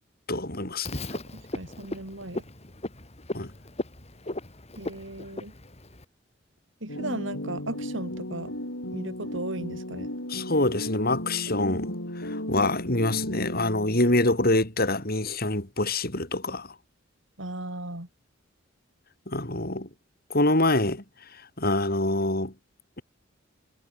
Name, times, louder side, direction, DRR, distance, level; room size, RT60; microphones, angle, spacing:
voice 1, 0.3-1.0 3.3-3.5 10.3-16.7 19.3-19.9 20.3-21.0 21.6-22.5, left 2 dB, 50° left, 6.6 m, -25 dB
Frog, 0.8-6.0, left 1 dB, 35° left, 3.0 m, -37 dB
voice 2, 1.1-2.4 4.8-5.5 6.8-8.5 8.9-10.1 17.4-18.1, right 1 dB, 70° right, 5.2 m, -36 dB
sound 1, 6.9-14.3, left 1 dB, 80° left, 8.0 m, -35 dB
head